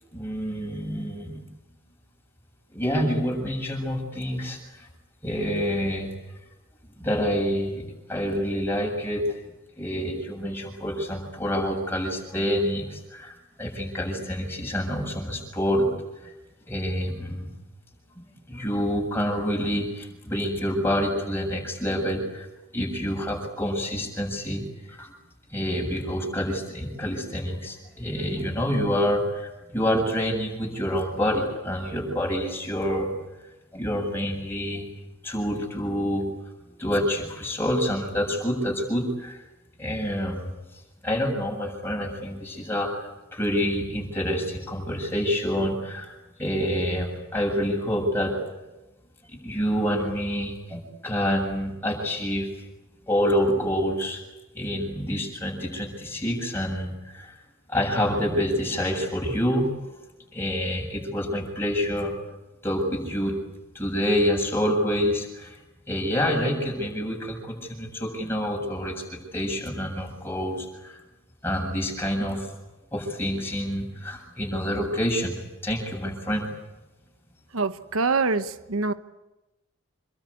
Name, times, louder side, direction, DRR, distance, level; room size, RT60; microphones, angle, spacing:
voice 1, 0.1-1.4 2.7-4.9 5.2-6.1 7.0-9.2 9.8-15.9 16.2-16.3 16.7-17.5 18.2-22.5 22.7-24.6 24.9-25.1 25.5-33.1 33.7-34.8 35.2-36.2 36.8-39.4 39.8-40.6 41.0-46.1 46.4-48.3 49.3-52.5 53.1-54.2 54.5-57.4 57.7-59.7 60.3-62.1 62.6-63.3 63.7-65.6 65.9-69.0 69.3-71.0 71.4-72.5 72.9-75.4 75.6-76.5, equal, 10° left, 0 dB, 7.4 m, -27 dB
voice 2, 77.5-78.9, right 4 dB, 90° right, 11 dB, 1.1 m, -25 dB
27.5 x 23.0 x 8.5 m, 1.0 s
head